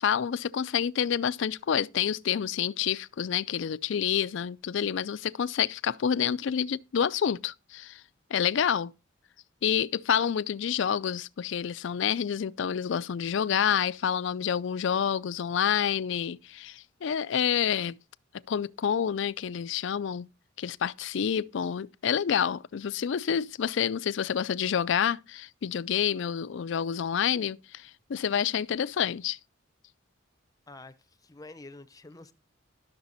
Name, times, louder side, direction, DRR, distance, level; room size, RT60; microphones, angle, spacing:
voice 1, 0.0-8.0 8.3-8.9 9.6-18.0 18.5-20.3 20.6-29.4, left 8 dB, 65° left, 0.4 m, -28 dB
voice 2, 30.7-32.3, left 2 dB, 20° left, 0.7 m, -48 dB
12.0 x 6.7 x 4.0 m
head